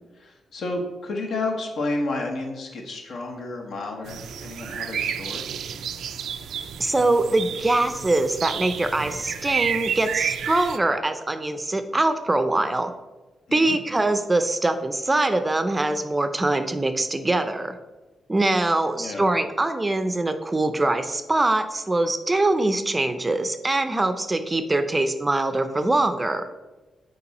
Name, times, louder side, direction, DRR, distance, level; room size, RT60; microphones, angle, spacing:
voice 1, 0.2-5.4 13.5-13.8 19.0-19.2, left 2 dB, 75° left, 1 dB, 1.3 m, -31 dB
sound 1, 4.1-10.8, right 8 dB, 85° right, 0.4 m, -31 dB
voice 2, 6.8-12.9 13.5-17.8 18.3-26.5, right 2 dB, 20° right, 9 dB, 0.5 m, -23 dB
7.0 x 4.8 x 4.2 m, 1.2 s
cardioid pair, 120°, 0 cm